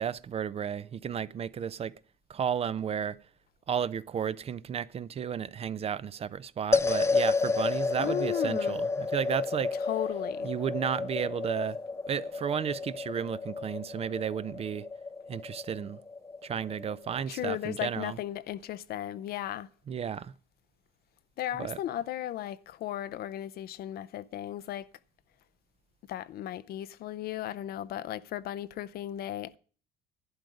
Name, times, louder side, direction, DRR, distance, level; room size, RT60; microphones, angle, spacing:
voice 1, 0.0-2.0 2.3-3.2 3.7-9.7 10.4-11.8 12.1-14.9 15.3-16.0 16.4-18.2 19.9-20.3 21.6-21.8, right 8 dB, 35° right, 0.5 m, -33 dB
sound 1, 6.7-17.2, left 4 dB, 15° left, 0.6 m, -31 dB
voice 2, 8.0-8.8 9.8-10.5 17.3-19.7 21.4-24.9 26.1-29.6, left 12 dB, 65° left, 0.6 m, -35 dB
11.0 x 10.5 x 5.2 m
cardioid pair, 110°, 17 cm